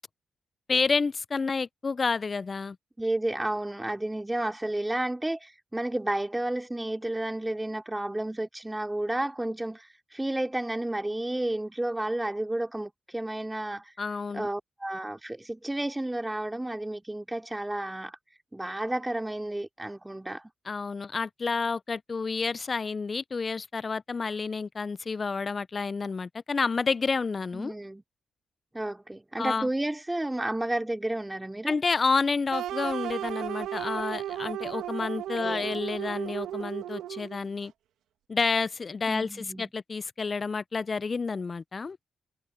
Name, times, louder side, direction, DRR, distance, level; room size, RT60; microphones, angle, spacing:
voice 1, 0.7-2.8 14.0-14.5 20.7-27.7 29.4-29.7 31.7-37.7 38.3-42.0, left 4 dB, 45° left, 0.5 m, -29 dB
voice 2, 3.0-13.9 14.3-18.2 18.5-20.4 27.5-28.0 28.7-31.7 35.4-35.8 39.1-39.7, right 1 dB, 15° right, 3.3 m, -31 dB
sound 1, 32.5-37.5, right 11 dB, 85° right, 2.0 m, -34 dB
supercardioid pair, 45°, 0 cm